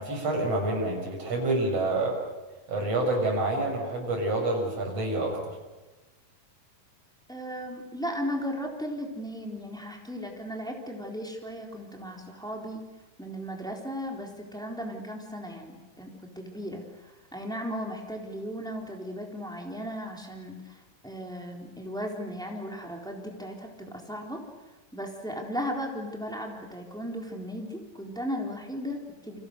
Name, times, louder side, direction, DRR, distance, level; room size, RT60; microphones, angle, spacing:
voice 1, 0.0-2.2 2.7-5.6, right 2 dB, 45° right, 1 dB, 7.4 m, -28 dB
voice 2, 7.3-12.8 13.2-24.4 24.9-29.4, equal, ahead, 1 dB, 3.4 m, -36 dB
30.0 x 25.5 x 6.7 m, 1.1 s
omnidirectional pair, 3.9 m